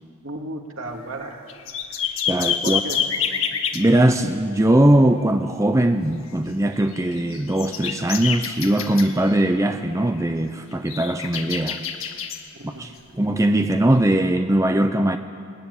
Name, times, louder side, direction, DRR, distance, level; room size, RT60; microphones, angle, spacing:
voice 1, 0.2-1.5 2.6-3.0 12.5-12.9, right 1 dB, 65° right, 1 dB, 2.8 m, -34 dB
sound 1, 0.9-1.0 1.2-3.8 6.8-9.7 10.0-10.2 10.7-12.4 13.9-14.0, left 7 dB, 70° left, 1.8 m, -28 dB
voice 2, 2.3-2.8 3.7-11.8 12.6-15.2, right 1 dB, 15° right, 7 dB, 0.7 m, -20 dB
21.0 x 20.0 x 9.9 m, 2.3 s
head